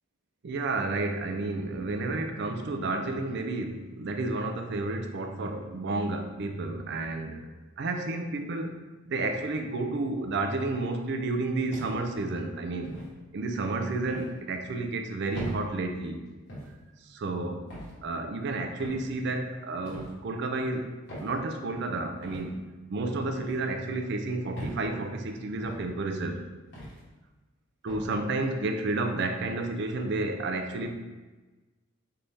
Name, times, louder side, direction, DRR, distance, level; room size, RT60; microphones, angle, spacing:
voice 1, 0.4-7.5 7.8-8.8 9.0-13.0 13.3-16.2 17.0-17.7 18.0-26.4 27.8-31.0, right 2 dB, 60° right, 5 dB, 0.4 m, -31 dB
sound 1, 11.7-12.2 12.8-13.1 14.1-14.3 15.3-15.6 16.5-16.7 17.7-17.9 18.8-19.0 19.8-20.1 21.1-21.3 22.2-22.4 23.3-23.6 24.5-24.8 25.6-25.8 26.7-27.0 27.9-28.1, right 1 dB, 60° left, 1.4 m, -40 dB
4.0 x 3.4 x 3.3 m, 1.2 s
head